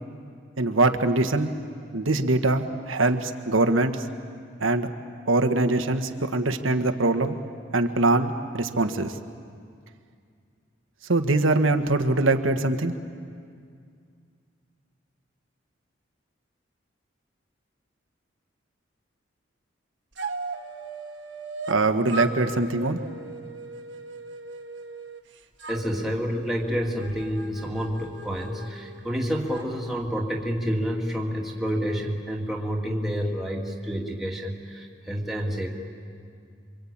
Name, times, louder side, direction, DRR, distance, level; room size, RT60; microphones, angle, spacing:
voice 1, 0.6-1.5 1.9-4.0 4.6-4.9 5.3-7.4 7.7-9.1 11.1-12.9 21.7-23.0, right 2 dB, 90° right, 7 dB, 1.5 m, -23 dB
sound 1, 20.2-21.8 22.1-25.2 25.6-29.7, right 3 dB, 70° right, 1.5 m, -38 dB
voice 2, 25.7-35.7, equal, ahead, -2 dB, 2.3 m, -29 dB
27.0 x 24.5 x 8.7 m, 2.2 s
head